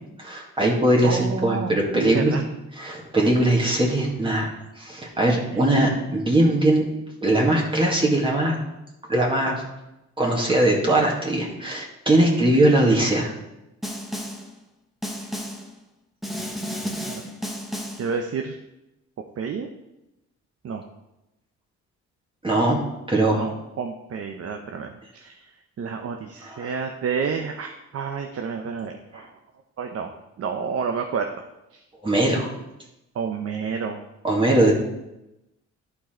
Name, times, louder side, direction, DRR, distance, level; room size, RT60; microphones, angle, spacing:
voice 1, 0.2-2.3 2.8-4.5 4.8-6.9 7.2-8.6 9.1-9.6 10.2-13.3 22.4-22.8 23.1-23.5 26.4-26.7 29.1-29.3 32.0-32.5 34.2-34.7, right 1 dB, 15° right, -3 dB, 2.1 m, -20 dB
voice 2, 1.0-2.4 5.2-5.6 17.1-17.2 17.9-18.6 19.4-19.7 20.6-20.8 23.1-25.5 25.8-29.3 29.8-30.1 30.4-31.3 31.7-31.8 33.1-34.0, right 6 dB, 55° right, 4 dB, 0.8 m, -30 dB
Snare drum, 13.8-14.5 15.0-15.7 16.2-18.1, equal, ahead, 1.2 m, -32 dB
11.5 x 4.6 x 4.5 m, 0.93 s
cardioid pair, 90°, 30 cm